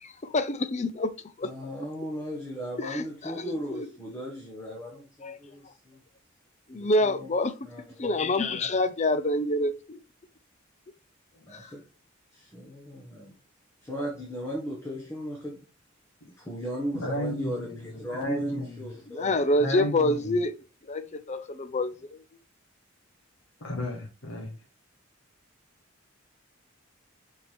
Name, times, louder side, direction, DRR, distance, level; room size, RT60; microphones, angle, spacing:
voice 1, 0.0-1.5 2.8-3.9 5.2-5.4 6.7-7.6 8.0-10.0 11.5-11.7 19.1-20.5 20.9-22.2, left 1 dB, 35° left, 0.6 m, -27 dB
voice 2, 1.4-6.0 6.7-7.3 7.6-8.7 11.5-11.8 12.3-13.3 13.8-15.6 16.4-19.3, equal, 15° left, 1.5 m, -37 dB
voice 3, 16.9-18.8 19.2-19.3 19.6-20.4 23.6-24.5, left 1 dB, 80° left, 1.6 m, -33 dB
6.9 x 4.6 x 3.4 m
head